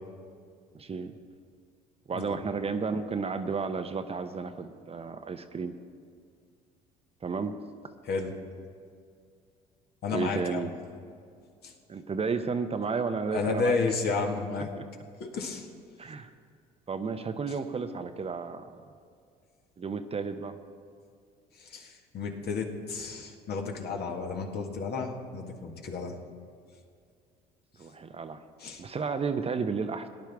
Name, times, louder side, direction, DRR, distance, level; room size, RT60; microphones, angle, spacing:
voice 1, 0.7-1.2 2.1-5.8 7.2-7.6 10.1-10.7 11.9-13.8 14.7-14.8 16.0-16.3 16.9-18.7 19.8-20.6 27.8-28.4 28.8-30.1, right 5 dB, 30° right, 8 dB, 0.8 m, -32 dB
voice 2, 10.0-10.7 11.6-11.7 13.3-14.7 15.2-15.7 21.6-26.2 28.6-28.8, left 4 dB, 55° left, 2 dB, 1.7 m, -32 dB
18.5 x 10.5 x 3.5 m, 2.2 s
hypercardioid pair, 65°, 20 cm